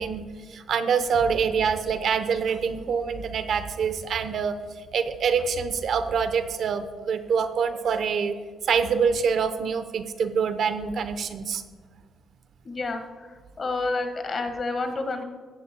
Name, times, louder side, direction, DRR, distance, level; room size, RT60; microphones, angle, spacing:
voice 1, 0.0-4.6 4.9-8.4 8.7-11.6, right 6 dB, 65° right, 10 dB, 0.8 m, -25 dB
voice 2, 12.6-13.0 13.6-15.2, left 3 dB, 40° left, 6 dB, 1.6 m, -29 dB
16.0 x 13.0 x 2.3 m, 1.5 s
cardioid pair, 90°, 0 cm